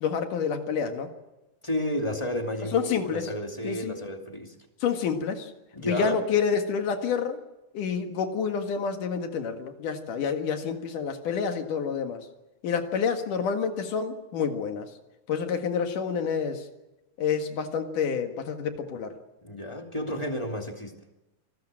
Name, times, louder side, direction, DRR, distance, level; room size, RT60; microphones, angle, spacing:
voice 1, 0.0-1.1 2.7-3.3 3.6-4.0 4.8-5.5 5.8-7.4 7.7-12.3 12.6-14.9 15.3-16.6 17.2-19.1, left 6 dB, 70° left, 6 dB, 3.3 m, -28 dB
voice 2, 1.6-4.6 5.7-6.2 19.4-21.0, left 1 dB, 10° left, 3 dB, 2.0 m, -31 dB
27.0 x 20.0 x 7.6 m, 0.99 s
omnidirectional pair, 3.9 m